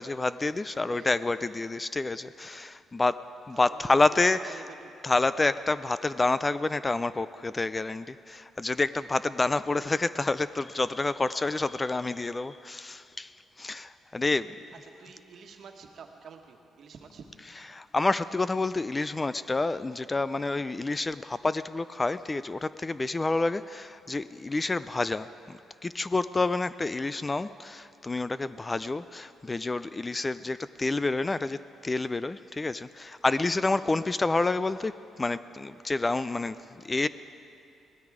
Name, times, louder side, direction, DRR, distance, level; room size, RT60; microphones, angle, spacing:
voice 1, 0.0-3.2 3.5-4.4 5.0-13.3 13.6-14.6 17.7-34.9 35.2-37.1, left 3 dB, 20° left, 15 dB, 0.3 m, -28 dB
voice 2, 0.7-1.2 3.5-5.1 9.4-9.5 9.8-9.9 14.7-17.3 33.7-34.1, right 6 dB, 60° right, 4 dB, 1.4 m, -49 dB
18.5 x 13.0 x 4.9 m, 2.5 s
cardioid pair, 90°, 0 cm